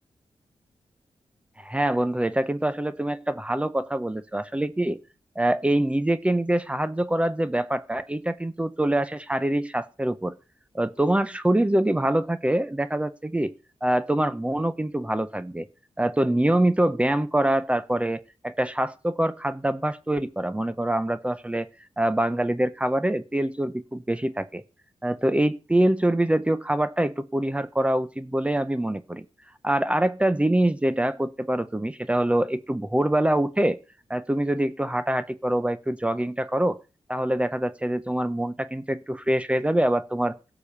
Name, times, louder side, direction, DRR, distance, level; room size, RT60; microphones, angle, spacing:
voice 1, 1.6-5.0 5.4-10.3 10.7-13.5 13.8-15.7 16.0-21.7 22.0-24.6 25.0-29.2 29.6-33.8 34.1-36.8 37.1-40.4, right 1 dB, 10° right, 13 dB, 0.7 m, -24 dB
16.5 x 7.0 x 6.9 m, 0.33 s
wide cardioid pair, 130°, 11 cm